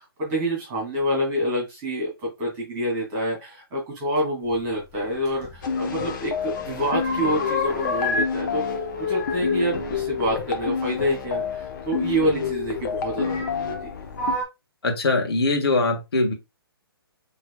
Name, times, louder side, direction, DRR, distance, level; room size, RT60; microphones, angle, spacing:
voice 1, 0.0-13.9, equal, 30° right, 2.5 m, -27 dB
sound 1, 5.3-6.2 6.4-8.3 8.6-11.1 12.1-12.2 13.2-13.8 14.1-14.4, left 2 dB, 35° left, 2.2 m, -29 dB
sound 2, 5.6-14.4, left 6 dB, 50° left, 0.8 m, -29 dB
voice 2, 14.8-16.3, left 2 dB, 75° left, 1.3 m, -22 dB
6.0 x 3.1 x 2.2 m
hypercardioid pair, 140°, 13 cm